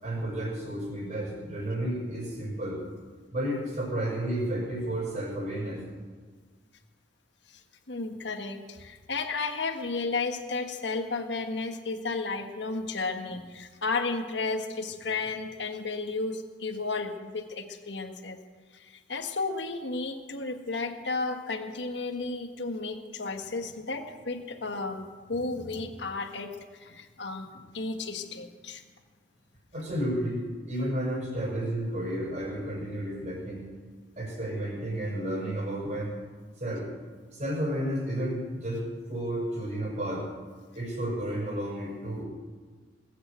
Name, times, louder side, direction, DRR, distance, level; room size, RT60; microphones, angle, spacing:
voice 1, 0.0-2.8 3.3-5.8 29.7-33.7 34.2-36.1 36.6-36.9 37.3-38.8 39.1-40.3 40.7-42.2, right 1 dB, 40° right, -3 dB, 6.0 m, -32 dB
voice 2, 7.9-18.4 18.7-28.8, left 3 dB, 70° left, 6 dB, 1.5 m, -33 dB
19.5 x 8.6 x 8.2 m, 1.5 s
head